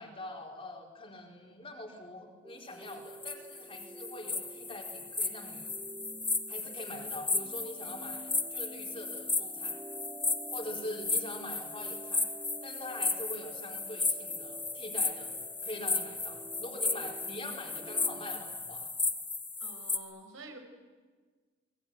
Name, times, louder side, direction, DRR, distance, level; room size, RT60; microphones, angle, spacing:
voice 1, 0.0-5.7 6.5-9.8 10.5-12.3 12.6-15.3 15.6-18.9, left 1 dB, 30° left, 0 dB, 4.3 m, -44 dB
sound 1, 2.4-18.4, right 2 dB, 10° right, 1.9 m, -50 dB
sound 2, 2.9-20.0, left 3 dB, 10° left, 1.5 m, -35 dB
voice 2, 19.6-20.6, right 2 dB, 85° right, 4 dB, 5.5 m, -48 dB
27.5 x 22.0 x 9.3 m, 1.5 s
head